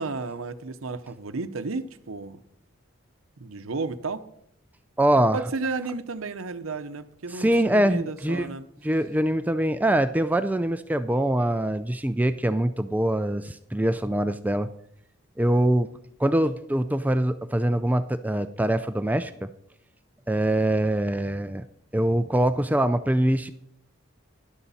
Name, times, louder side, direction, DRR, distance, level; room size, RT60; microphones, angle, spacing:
voice 1, 0.0-2.4 3.4-4.2 5.1-8.7, right 3 dB, 85° right, 0.8 m, -33 dB
voice 2, 5.0-5.4 7.3-8.5 8.8-14.7 15.4-15.9 16.2-19.5 20.3-21.6 21.9-23.5, right 1 dB, 10° right, 0.3 m, -23 dB
12.5 x 11.5 x 4.2 m
head